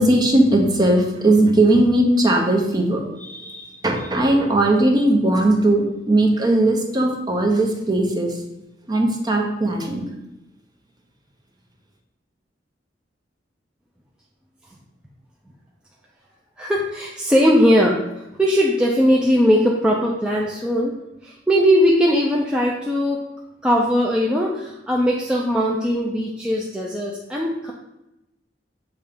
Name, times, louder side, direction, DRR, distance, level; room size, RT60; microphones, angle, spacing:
voice 1, 0.0-8.4 8.9-10.1, right 1 dB, 20° right, 1 dB, 1.0 m, -18 dB
voice 2, 16.6-21.0 21.2-23.2 23.6-27.7, equal, 5° right, -3 dB, 0.5 m, -19 dB
7.1 x 3.3 x 5.0 m, 0.93 s
head